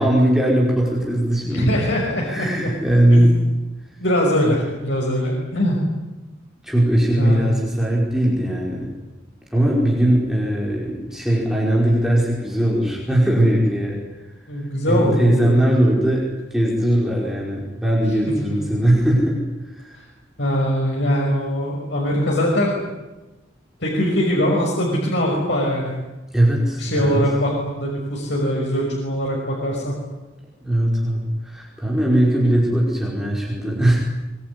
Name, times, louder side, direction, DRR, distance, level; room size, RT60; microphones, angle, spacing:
voice 1, 0.0-1.8 2.2-3.4 6.6-8.9 9.5-14.0 14.6-19.4 19.7-20.0 26.3-27.3 30.6-34.0, right 1 dB, 5° right, -4 dB, 5.2 m, -19 dB
voice 2, 1.5-2.7 3.1-3.3 4.0-5.8 7.2-7.5 14.5-15.7 20.4-22.9 23.8-25.9 26.8-29.9, equal, 65° left, -2 dB, 5.9 m, -22 dB
24.0 x 22.0 x 9.8 m, 1.1 s
head